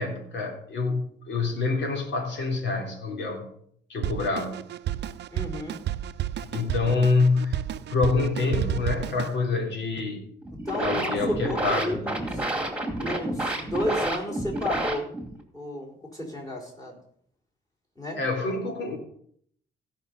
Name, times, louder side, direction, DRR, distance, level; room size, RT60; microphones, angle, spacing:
voice 1, 0.0-3.5 3.9-4.6 6.5-10.3 10.8-12.0 18.2-19.0, left 3 dB, 65° left, 0 dB, 3.5 m, -26 dB
Drum kit, 4.0-9.4, right 11 dB, 60° right, 0.5 m, -31 dB
voice 2, 5.3-5.8 10.5-12.4 13.0-15.1 15.5-17.0 18.0-18.2, left 1 dB, 15° left, 0 dB, 4.4 m, -32 dB
sound 1, 10.4-15.4, right 1 dB, 5° right, 2.4 m, -30 dB
16.5 x 5.6 x 5.4 m, 0.65 s
cardioid pair, 90°, 20 cm